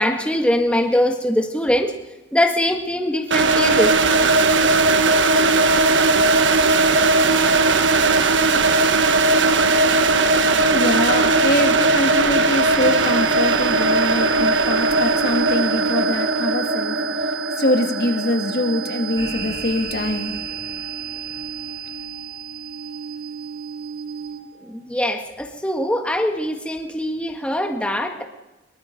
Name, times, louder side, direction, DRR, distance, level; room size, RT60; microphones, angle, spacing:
voice 1, 0.0-1.9 2.3-3.9 24.7-28.2, left 1 dB, 5° left, 3 dB, 1.7 m, -22 dB
sound 1, 3.3-20.1, right 3 dB, 90° right, 1.3 m, -18 dB
voice 2, 10.7-20.4, left 1 dB, 55° left, 5 dB, 2.0 m, -23 dB
sound 2, 11.2-24.7, right 8 dB, 65° right, 1.3 m, -33 dB
sound 3, 19.2-23.0, right 1 dB, 20° right, 4.8 m, -38 dB
23.5 x 23.0 x 5.3 m, 1.0 s
head